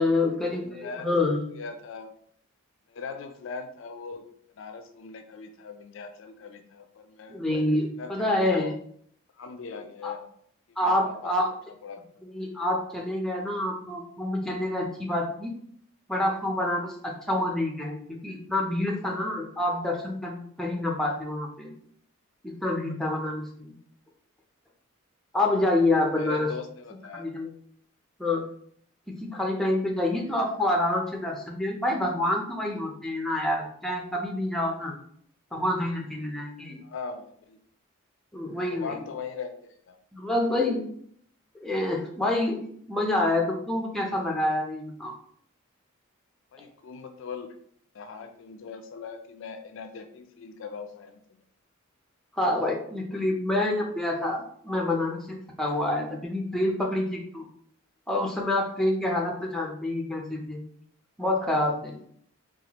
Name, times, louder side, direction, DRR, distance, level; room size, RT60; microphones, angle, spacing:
voice 1, 0.0-1.5 7.3-8.7 10.0-10.1 10.8-11.5 12.2-15.6 16.1-21.7 22.4-23.7 25.3-26.5 27.1-27.5 28.2-28.4 29.2-35.0 35.5-36.8 38.3-39.0 40.1-40.8 41.6-42.6 42.9-45.1 52.3-57.4 58.1-60.6 61.2-61.9, left 1 dB, ahead, -1 dB, 0.5 m, -27 dB
voice 2, 0.6-1.1 1.5-2.1 2.9-4.3 4.6-7.4 8.0-8.7 9.4-10.3 10.7-11.3 11.7-12.0 25.9-27.3 36.8-37.6 38.6-39.5 39.9-40.0 46.5-47.5 47.9-51.4, left 5 dB, 60° left, 7 dB, 0.4 m, -40 dB
4.2 x 2.3 x 2.9 m, 0.64 s
head